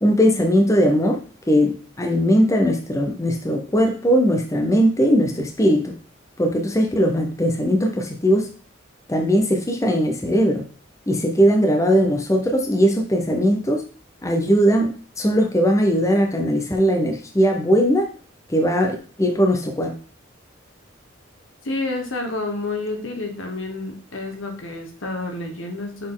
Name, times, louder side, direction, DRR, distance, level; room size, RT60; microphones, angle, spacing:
voice 1, 0.0-1.2 1.5-5.9 6.4-8.5 9.1-10.6 11.1-13.8 14.2-18.1 18.5-19.9, equal, 15° left, 3 dB, 0.7 m, -19 dB
voice 2, 21.6-26.1, left 2 dB, 75° left, 3 dB, 1.4 m, -29 dB
6.3 x 4.1 x 3.8 m, 0.40 s
head